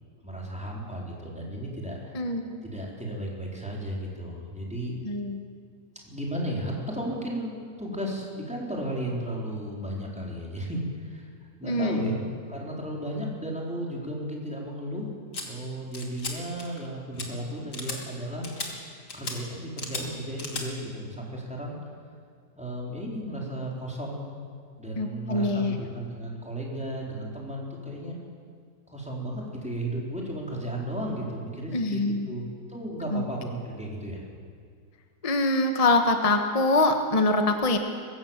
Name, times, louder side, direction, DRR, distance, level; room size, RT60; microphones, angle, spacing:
voice 1, 0.2-2.1 2.6-4.9 6.0-7.5 7.8-15.1 15.4-18.5 18.9-21.8 22.6-24.3 24.8-28.2 28.9-34.2, right 1 dB, 5° right, -3 dB, 4.1 m, -34 dB
voice 2, 2.1-2.6 5.0-5.4 11.6-12.2 25.0-25.7 31.7-32.3 33.1-33.2 35.2-37.8, left 2 dB, 25° left, 5 dB, 1.2 m, -24 dB
sound 1, 15.3-15.4 15.9-16.3 16.6-16.9 17.2-17.3 17.7-18.0 18.4-18.7 19.1-19.4 19.8-20.0 20.4-20.6, left 3 dB, 65° left, 3.1 m, -35 dB
22.5 x 16.0 x 7.4 m, 2.1 s
omnidirectional pair, 1.9 m